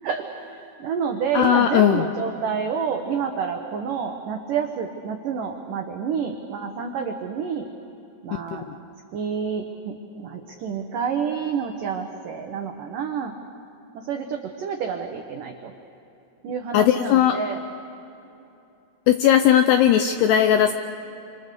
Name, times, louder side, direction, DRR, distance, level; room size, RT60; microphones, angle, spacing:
voice 1, 0.0-7.7 8.2-8.7 9.1-13.4 13.9-15.7 16.4-17.6, right 6 dB, 80° right, 4 dB, 1.9 m, -29 dB
voice 2, 1.3-2.1 8.5-8.8 16.7-17.4 19.1-20.7, left 10 dB, 80° left, 7 dB, 2.4 m, -18 dB
28.0 x 26.5 x 6.8 m, 2.9 s
omnidirectional pair, 5.6 m